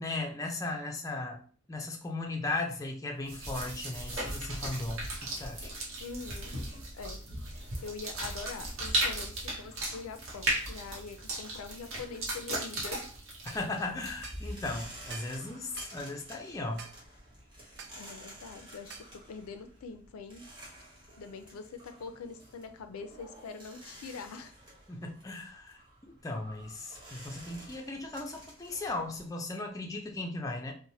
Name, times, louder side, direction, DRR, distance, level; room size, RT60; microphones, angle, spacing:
voice 1, 0.0-1.4 1.7-5.7 13.5-16.9 24.9-25.8 26.2-30.7, left 2 dB, 15° left, 1 dB, 0.4 m, -37 dB
sound 1, 3.3-14.5, right 1 dB, 70° right, 0.9 m, -36 dB
voice 2, 6.0-6.7 6.9-7.2 7.8-13.1 18.0-20.5 21.2-24.5, left 5 dB, 90° left, 8 dB, 0.4 m, -44 dB
sound 2, 13.5-13.6 14.2-14.4 15.1-15.4 15.8-16.0 16.8-17.0 17.8-18.0 18.9-19.1, right 6 dB, 55° right, 0.4 m, -46 dB
sound 3, 13.8-29.3, equal, 25° right, 1.0 m, -50 dB
3.1 x 2.1 x 2.7 m, 0.43 s
head